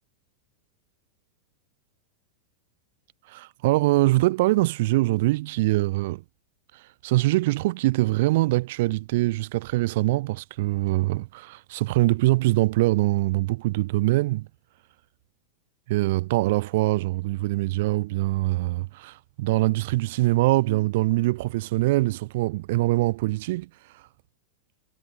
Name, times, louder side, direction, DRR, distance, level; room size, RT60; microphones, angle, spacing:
voice 1, 3.2-6.2 6.7-14.5 15.9-24.1, right 19 dB, 50° right, 1.8 m, -23 dB
figure-of-eight pair, 90°, 0 cm